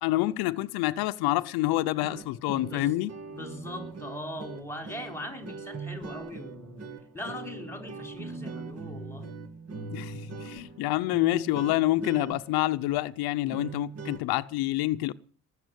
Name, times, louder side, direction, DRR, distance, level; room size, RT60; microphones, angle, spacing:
voice 1, 0.0-3.1 9.9-15.1, left 17 dB, 90° left, 0.7 m, -27 dB
sound 1, 1.9-14.2, right 4 dB, 40° right, 2.4 m, -41 dB
voice 2, 3.3-6.9 7.1-9.3, left 1 dB, 5° left, 4.3 m, -40 dB
20.0 x 7.3 x 8.1 m
cardioid pair, 120°, 36 cm